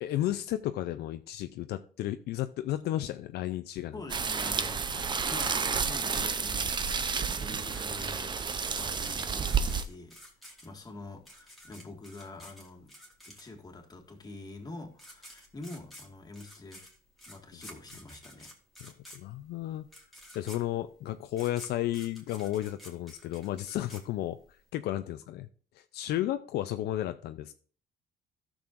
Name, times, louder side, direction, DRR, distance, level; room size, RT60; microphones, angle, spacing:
voice 1, 0.0-4.0 18.8-19.9 20.3-24.4 24.7-25.5 25.8-27.5, left 13 dB, 70° left, 9 dB, 0.5 m, -33 dB
voice 2, 3.9-10.2 10.4-12.9 13.2-16.9 17.3-18.5, left 2 dB, 25° left, 2 dB, 1.7 m, -46 dB
sound 1, 4.1-9.8, right 5 dB, 25° right, 0.6 m, -30 dB
sound 2, 5.9-13.8 14.6-14.7 14.9-24.6, equal, ahead, 2.2 m, -51 dB
14.0 x 6.3 x 2.5 m, 0.43 s
cardioid pair, 110°, 17 cm